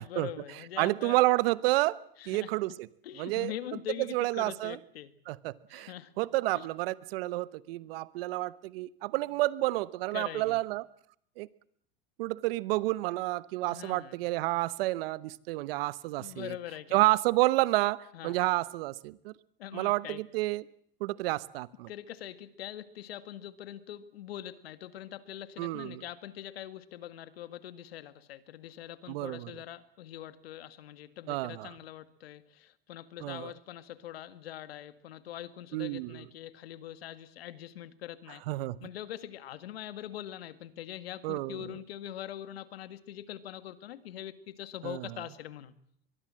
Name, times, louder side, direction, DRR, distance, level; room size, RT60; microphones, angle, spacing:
voice 1, 0.0-1.2 2.2-2.5 3.0-5.1 5.7-6.1 6.5-6.7 10.1-10.6 13.7-14.2 16.2-17.0 18.1-18.4 19.6-20.2 21.9-38.4 38.8-45.7, left 12 dB, 85° left, 1.9 m, -43 dB
voice 2, 0.8-2.0 2.3-2.9 3.2-3.5 4.1-4.8 5.3-5.9 6.2-10.8 11.4-11.5 12.2-16.5 16.9-19.3 19.7-20.6 21.0-21.9 25.6-26.0 29.1-29.5 31.3-31.7 33.2-33.5 35.7-36.2 38.5-38.8 41.2-41.6 44.8-45.1, right 19 dB, 75° right, 1.1 m, -30 dB
23.5 x 22.5 x 7.6 m
hypercardioid pair, 100°, 29 cm